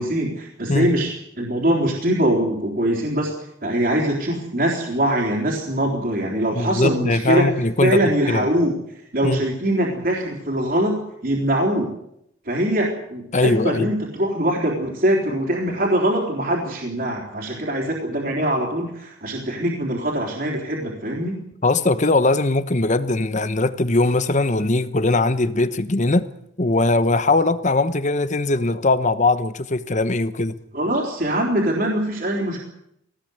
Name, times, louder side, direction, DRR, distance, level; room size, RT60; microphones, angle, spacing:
voice 1, 0.0-3.3 3.6-7.5 7.8-8.8 9.1-11.0 11.2-11.9 12.5-21.4 30.7-32.6, right 1 dB, 45° right, 3.7 m, -22 dB
voice 2, 6.5-8.5 9.2-9.4 13.3-13.9 21.6-26.3 26.6-30.6, left 2 dB, 35° left, 1.0 m, -20 dB
20.5 x 17.5 x 8.1 m
head